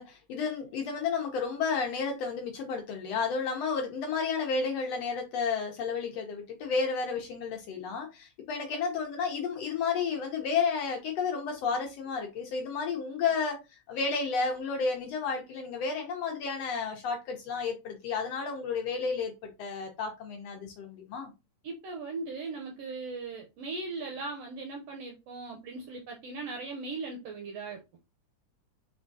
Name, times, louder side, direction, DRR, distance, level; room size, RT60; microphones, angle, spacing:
voice 1, 0.0-21.3, left 5 dB, 70° left, 1.6 m, -32 dB
voice 2, 21.6-27.8, right 3 dB, 75° right, 1.5 m, -38 dB
5.0 x 3.6 x 2.6 m
omnidirectional pair, 3.6 m